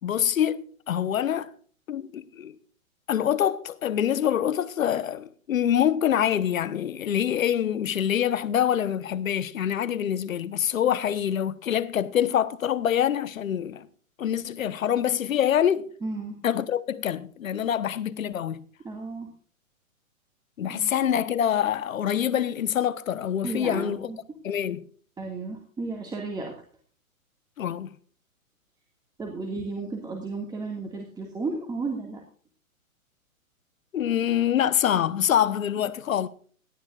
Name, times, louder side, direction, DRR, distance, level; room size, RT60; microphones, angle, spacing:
voice 1, 0.0-1.5 1.9-2.5 3.1-13.9 14.2-15.9 16.4-18.6 20.6-24.1 24.4-24.9 27.6-27.9 33.9-36.3, left 10 dB, 65° left, 1.2 m, -25 dB
voice 2, 16.0-16.4 18.8-19.3 20.6-20.9 23.4-24.4 25.2-26.5 29.2-32.2, right 3 dB, 10° right, 2.1 m, -33 dB
18.0 x 12.5 x 2.5 m
hypercardioid pair, 130°, 42 cm